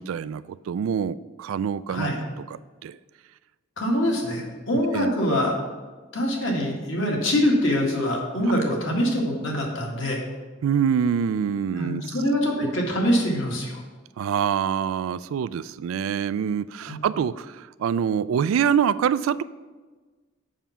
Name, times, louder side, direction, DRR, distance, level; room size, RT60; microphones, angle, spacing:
voice 1, 0.0-2.2 2.5-3.0 4.9-5.1 10.6-12.0 14.2-19.4, right 7 dB, 80° right, 17 dB, 0.3 m, -25 dB
voice 2, 1.9-2.2 3.8-5.5 6.1-10.2 11.7-13.8 16.9-17.0, equal, 65° left, -1 dB, 1.9 m, -24 dB
7.3 x 5.9 x 5.7 m, 1.3 s
head